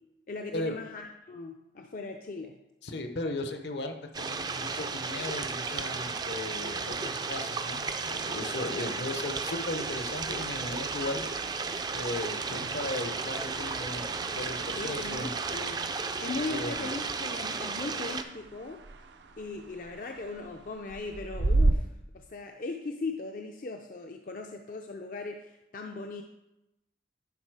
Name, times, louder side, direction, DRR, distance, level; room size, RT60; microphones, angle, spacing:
voice 1, 0.3-2.6 8.8-8.9 14.7-18.8 19.4-21.9 22.1-26.2, left 3 dB, 50° left, 3 dB, 0.4 m, -38 dB
voice 2, 2.8-11.2 11.9-14.1 14.3-15.3 16.5-16.9, left 2 dB, 70° left, 6 dB, 0.8 m, -36 dB
sound 1, 4.1-18.2, right 4 dB, 20° right, 0.3 m, -34 dB
sound 2, 6.6-21.7, right 2 dB, 75° right, 0.5 m, -36 dB
11.0 x 4.0 x 4.7 m, 0.92 s
head